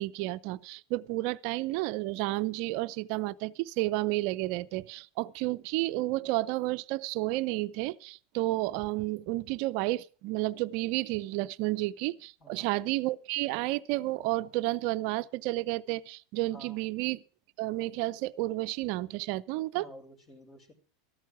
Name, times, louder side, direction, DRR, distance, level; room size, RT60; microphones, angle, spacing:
voice 1, 0.0-17.2 17.6-19.9, right 18 dB, 55° right, 0.6 m, -31 dB
voice 2, 12.4-12.7 16.5-16.8 19.7-20.7, equal, 35° left, 5.1 m, -51 dB
13.5 x 13.5 x 4.7 m
figure-of-eight pair, 85°, 0 cm